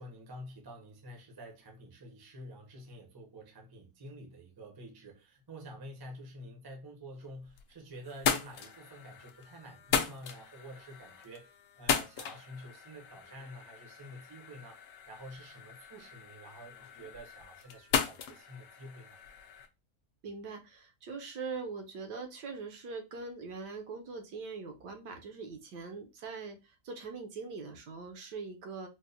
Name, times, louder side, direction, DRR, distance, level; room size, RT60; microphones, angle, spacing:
voice 1, 0.0-19.2, equal, 30° right, 0.4 m, -49 dB
sound 1, 7.2-7.7 8.0-19.7, left 7 dB, 70° left, 0.8 m, -37 dB
voice 2, 20.2-28.9, right 4 dB, 80° right, 1.4 m, -42 dB
4.4 x 2.1 x 2.6 m
omnidirectional pair, 1.8 m